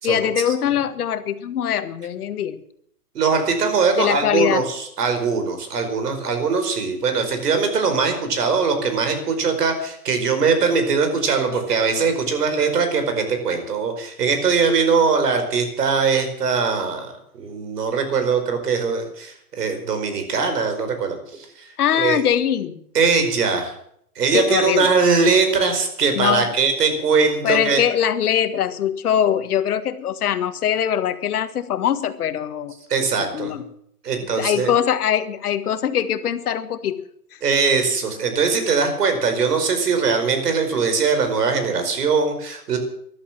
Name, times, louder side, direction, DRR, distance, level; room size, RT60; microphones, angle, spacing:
voice 1, 0.0-2.6 4.0-4.6 21.8-22.8 24.3-24.9 26.1-26.5 27.4-32.7 33.3-33.6 34.4-37.0, left 9 dB, 70° left, 11 dB, 1.7 m, -22 dB
voice 2, 3.1-21.7 22.0-22.2 22.9-23.7 24.1-27.8 32.9-33.5 34.0-34.7 37.4-42.8, right 5 dB, 80° right, 7 dB, 4.9 m, -21 dB
14.0 x 11.5 x 7.5 m, 0.70 s
hypercardioid pair, 160°, 46 cm